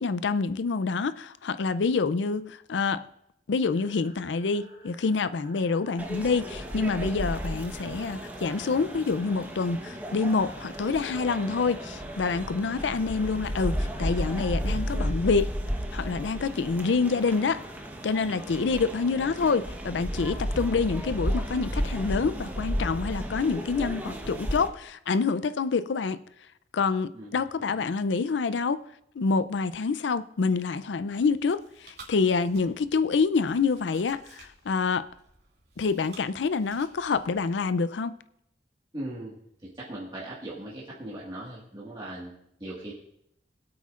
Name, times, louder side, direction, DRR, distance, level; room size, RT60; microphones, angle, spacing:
voice 1, 0.0-3.0 3.5-15.5 15.9-17.6 18.0-26.2 26.7-28.8 29.2-35.1 35.8-38.2, left 4 dB, 85° left, 0.5 m, -27 dB
sound 1, 3.7-15.1, equal, 60° left, 5.1 m, -53 dB
sound 2, 6.0-24.7, equal, 10° right, 1.0 m, -33 dB
voice 2, 19.2-19.5 27.1-27.9 38.9-39.3 39.7-42.3 42.6-42.9, right 1 dB, 25° right, 1.7 m, -39 dB
Chewing mastication, 31.1-37.7, right 3 dB, 65° right, 2.5 m, -54 dB
22.5 x 8.5 x 2.5 m
head